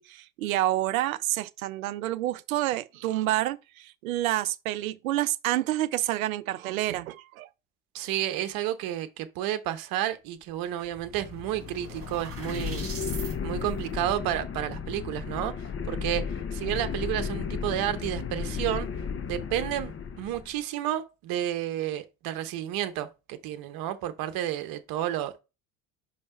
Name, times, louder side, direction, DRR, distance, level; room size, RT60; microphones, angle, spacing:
voice 1, 0.0-7.5, right 14 dB, 80° right, 0.5 m, -28 dB
voice 2, 7.9-12.9 13.4-18.9 19.3-25.4, right 12 dB, 55° right, 0.9 m, -31 dB
sound 1, 10.5-10.6 10.8-13.3, right 5 dB, 35° right, 2.1 m, -42 dB
sound 2, 11.0-20.5, left 6 dB, 30° left, 0.9 m, -34 dB
5.4 x 4.7 x 4.5 m
hypercardioid pair, 60°, 41 cm